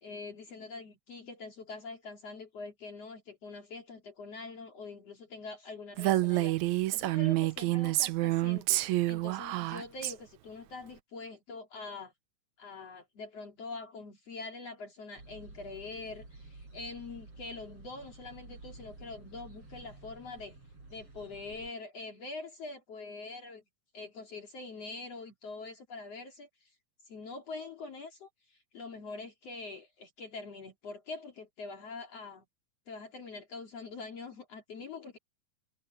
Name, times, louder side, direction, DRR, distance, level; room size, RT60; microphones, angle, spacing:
voice 1, 0.0-12.1 12.6-20.6 20.9-23.6 23.9-26.7 27.1-32.4 32.9-35.2, left 3 dB, 55° left, 3.7 m, -44 dB
Female speech woman speaking, 6.0-10.1, right 17 dB, 75° right, 1.9 m, -28 dB
sound 1, 15.2-21.7, right 2 dB, 45° right, 8.5 m, -52 dB
omnidirectional pair, 3.5 m